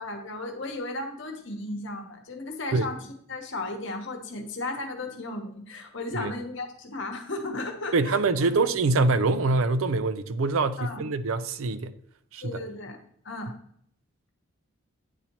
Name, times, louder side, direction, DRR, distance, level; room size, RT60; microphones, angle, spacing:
voice 1, 0.0-8.5 10.8-11.0 12.4-13.0 13.2-13.5, left 2 dB, 60° left, 1.0 m, -35 dB
voice 2, 7.9-11.9 12.3-12.6, right 3 dB, 75° right, 0.4 m, -24 dB
9.4 x 4.2 x 2.9 m
head